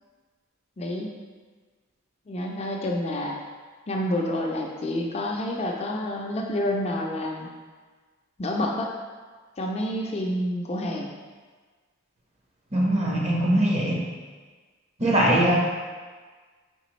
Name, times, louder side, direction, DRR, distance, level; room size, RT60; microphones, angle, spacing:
voice 1, 0.8-1.1 2.3-3.4 3.9-7.5 8.4-8.9 9.6-11.1, left 1 dB, 30° left, -1 dB, 0.4 m, -28 dB
voice 2, 12.7-14.1 15.0-15.5, right 1 dB, 30° right, -3 dB, 0.8 m, -21 dB
4.9 x 3.5 x 3.1 m, 1.4 s
head